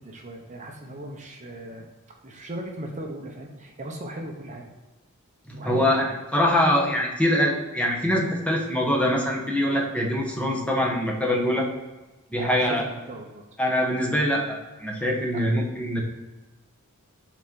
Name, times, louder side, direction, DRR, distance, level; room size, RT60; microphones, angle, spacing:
voice 1, 0.0-1.9 2.2-4.7 5.5-6.2 12.4-13.4 15.3-15.4, right 1 dB, 35° right, 1 dB, 0.9 m, -38 dB
voice 2, 5.5-11.7 12.3-12.8 13.6-16.0, equal, 5° left, -1 dB, 1.2 m, -24 dB
6.1 x 4.4 x 5.3 m, 1.1 s
head